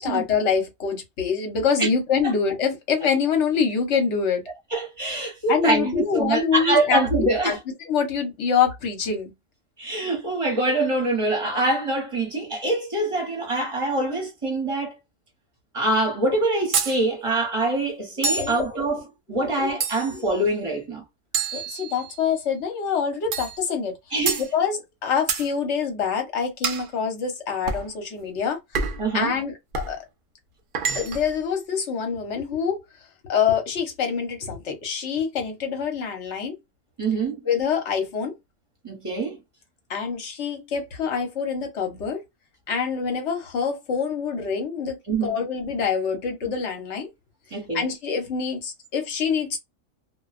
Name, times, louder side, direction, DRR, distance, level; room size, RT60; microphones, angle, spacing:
voice 1, 0.0-4.4 5.5-7.6 7.9-9.3 18.4-18.9 19.6-19.7 21.5-23.9 24.4-28.8 29.1-30.0 30.9-32.8 33.3-36.5 37.4-38.3 39.9-42.2 42.7-47.1 47.7-49.6, left 6 dB, 65° left, 1.1 m, -25 dB
voice 2, 4.7-7.6 9.8-14.9 15.7-19.0 19.3-21.0 24.1-24.4 29.0-29.3 37.0-37.4 38.8-39.4 45.1-45.4 47.5-47.8, right 2 dB, 25° right, 1.0 m, -24 dB
sound 1, 16.7-17.0 18.2-18.6 19.8-20.3 21.3-22.2 23.3-23.6 24.3-24.5 25.3-25.5 26.6-26.9 27.7-27.9 28.7-29.1 29.7-30.0 30.7-31.3, right 5 dB, 60° right, 0.6 m, -27 dB
2.3 x 2.3 x 2.3 m
omnidirectional pair, 1.4 m